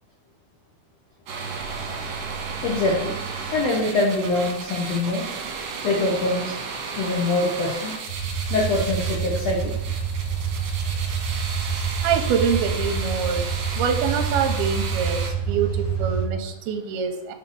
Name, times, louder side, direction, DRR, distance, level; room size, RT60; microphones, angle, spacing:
sound 1, 1.3-15.3, right 5 dB, 65° right, 2.6 m, -33 dB
voice 1, 2.6-3.1 3.5-5.2 5.8-6.6 7.0-7.9 8.5-9.8, left 2 dB, 80° left, -3 dB, 1.4 m, -24 dB
sound 2, 8.1-16.2, right 6 dB, 50° left, 2.9 m, -27 dB
voice 2, 12.0-13.5 13.8-17.3, right 6 dB, 85° right, 4 dB, 2.5 m, -25 dB
6.7 x 5.8 x 3.8 m, 0.82 s
omnidirectional pair, 4.6 m